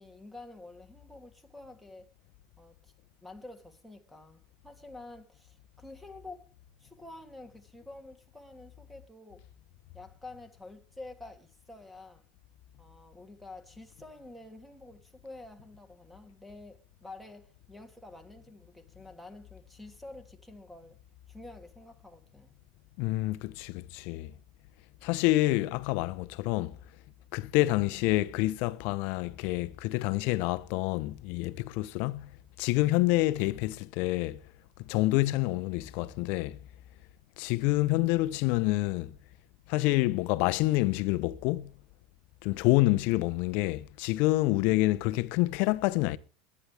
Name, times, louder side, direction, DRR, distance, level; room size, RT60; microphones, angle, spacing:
voice 1, 0.0-2.1 2.6-2.9 3.2-6.5 6.8-9.4 9.9-12.2 12.8-21.0 21.3-22.6, left 2 dB, ahead, 2.8 m, -49 dB
voice 2, 23.0-24.3 25.0-26.8 27.3-32.3 32.6-34.4 34.9-36.6 37.4-39.1 39.7-41.7 42.4-46.2, left 19 dB, 65° left, 0.9 m, -27 dB
22.0 x 9.8 x 3.5 m
supercardioid pair, 105°, 3 cm